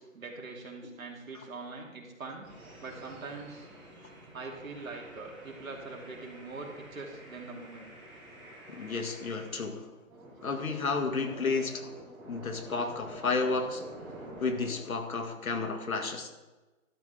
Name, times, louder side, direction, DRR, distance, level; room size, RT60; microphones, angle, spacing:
voice 1, 0.0-2.5 2.8-3.7 4.3-7.9, right 3 dB, 70° right, 0 dB, 3.1 m, -43 dB
sound 1, 2.4-9.6 10.0-14.9, right 1 dB, ahead, 1.2 m, -49 dB
voice 2, 8.7-9.9 10.4-12.0 12.3-13.8 14.4-16.3, left 4 dB, 75° left, 6 dB, 2.0 m, -32 dB
12.0 x 12.0 x 3.5 m, 1.1 s
hypercardioid pair, 170°, 42 cm